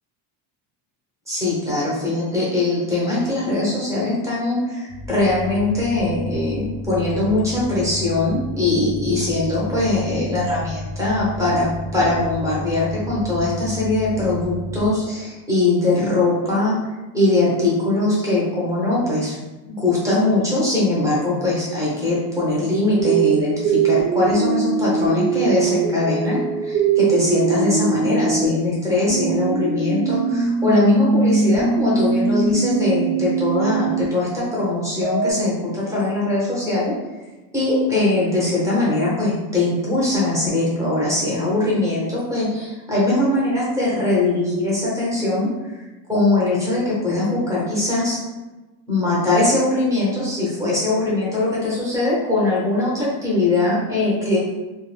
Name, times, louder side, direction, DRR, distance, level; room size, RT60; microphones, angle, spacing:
voice 1, 1.3-16.7 17.1-19.4 19.7-36.9 37.5-48.2 48.9-54.4, left 2 dB, 5° right, -9 dB, 0.7 m, -21 dB
sound 1, 4.9-14.9, left 2 dB, 60° left, 0.5 m, -32 dB
sound 2, 23.0-28.4 29.1-34.0 35.0-35.3, right 5 dB, 45° right, 0.8 m, -21 dB
2.4 x 2.2 x 3.2 m, 1.1 s
cardioid pair, 165°, 44 cm